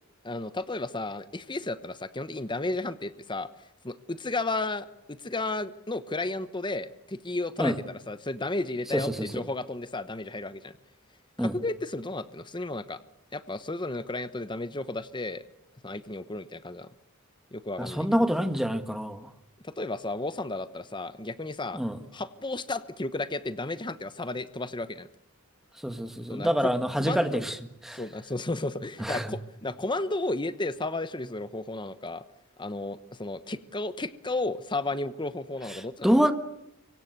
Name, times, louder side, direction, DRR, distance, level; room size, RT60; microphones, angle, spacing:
voice 1, 0.2-3.5 3.8-10.7 11.4-13.0 13.3-15.4 15.8-16.9 17.5-18.1 19.6-21.8 22.1-25.1 26.3-26.7 27.0-27.4 27.9-32.2 32.6-36.3, left 2 dB, 20° left, 13 dB, 1.0 m, -33 dB
voice 2, 8.9-9.3 11.4-11.5 17.8-19.3 21.7-22.0 25.8-27.6 27.8-28.0 29.0-29.3 36.0-36.3, equal, ahead, 8 dB, 1.7 m, -26 dB
26.0 x 24.0 x 8.1 m, 0.79 s
head